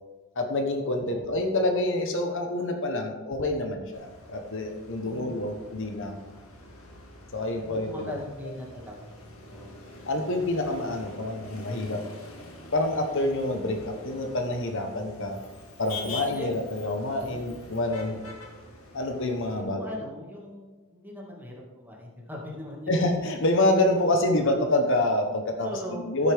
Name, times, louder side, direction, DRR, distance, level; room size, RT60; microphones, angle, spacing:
voice 1, 0.4-6.2 7.3-8.1 10.1-12.0 12.7-15.4 15.8-18.2 18.9-19.8 22.9-26.3, left 1 dB, 60° left, 3 dB, 1.3 m, -27 dB
voice 2, 0.9-1.2 5.0-5.3 5.8-5.9 7.6-9.1 9.4-9.7 16.3-16.6 17.2-17.6 19.5-22.9 25.6-26.0, left 1 dB, 10° right, -3 dB, 2.2 m, -40 dB
Motor vehicle (road), 3.9-19.6, left 2 dB, 80° left, 2.0 m, -45 dB
14.0 x 8.3 x 3.6 m, 1.3 s
head